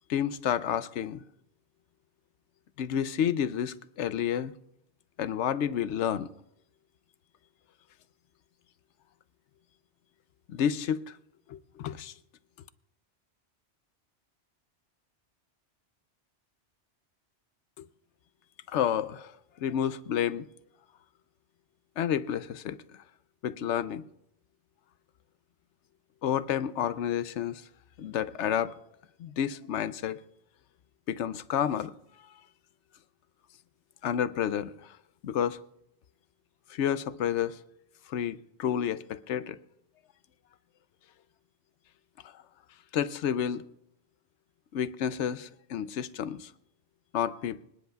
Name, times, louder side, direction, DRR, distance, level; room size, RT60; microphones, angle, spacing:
voice 1, 0.1-1.2 2.8-4.5 5.2-6.3 10.5-11.2 11.5-12.1 17.8-17.9 18.7-20.5 22.0-23.0 23.4-24.0 26.2-27.6 28.0-28.7 29.2-30.2 31.1-31.9 32.2-32.3 34.0-35.0 35.2-35.6 36.7-37.6 38.1-39.6 42.2-42.3 42.9-43.6 44.7-46.5 47.1-47.6, left 9 dB, 90° left, 0.9 m, -30 dB
25.5 x 10.5 x 2.3 m
omnidirectional pair, 1.2 m